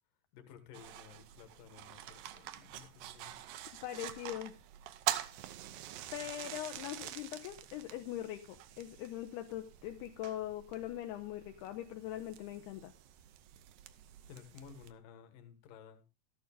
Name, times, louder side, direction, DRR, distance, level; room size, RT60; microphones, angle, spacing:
voice 1, 0.3-3.4 14.3-16.0, left 7 dB, 65° left, 2.6 m, -55 dB
sound 1, 0.7-14.9, right 12 dB, 80° right, 2.1 m, -45 dB
voice 2, 3.8-4.5 5.3-5.5 6.1-12.9, left 13 dB, 80° left, 2.6 m, -42 dB
13.0 x 11.0 x 3.5 m
omnidirectional pair, 4.9 m